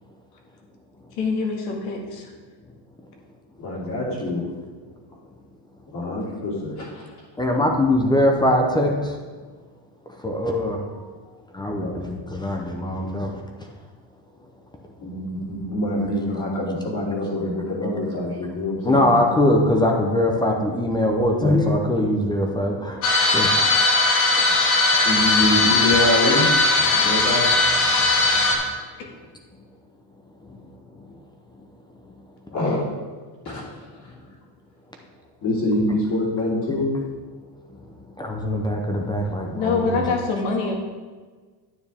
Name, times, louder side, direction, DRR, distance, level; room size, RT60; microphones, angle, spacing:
voice 1, 1.2-2.3 39.5-40.7, left 4 dB, 70° left, 0 dB, 2.1 m, -24 dB
voice 2, 3.6-4.4 5.9-7.0 11.8-11.9 15.0-19.1 25.0-26.5 26.9-27.4 32.5-32.8 33.4-33.6 35.4-36.8, left 1 dB, 45° left, -8 dB, 3.1 m, -25 dB
voice 3, 7.4-9.1 10.2-11.0 11.5-13.3 15.3-15.5 16.0-16.1 18.8-23.0 23.3-23.6 25.3-25.6 27.9-28.0 33.5-33.6 36.0-36.1 36.9-37.0 38.2-40.1, left 1 dB, 10° left, 2 dB, 0.6 m, -22 dB
sound 1, 23.0-28.5, left 2 dB, 90° left, 1.9 m, -18 dB
9.7 x 8.6 x 3.5 m, 1.4 s
cardioid pair, 160°, 50 cm